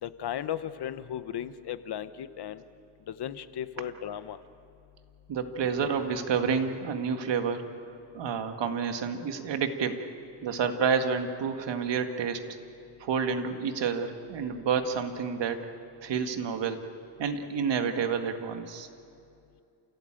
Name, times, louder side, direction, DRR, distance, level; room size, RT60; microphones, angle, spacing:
voice 1, 0.0-2.6 3.1-4.4, left 10 dB, 60° left, 12 dB, 1.1 m, -36 dB
voice 2, 5.3-7.7 8.1-10.0 10.4-12.4 13.0-15.6 16.0-16.8 17.2-18.9, right 6 dB, 70° right, 6 dB, 2.0 m, -29 dB
29.0 x 16.5 x 9.0 m, 2.5 s
cardioid pair, 120°, 44 cm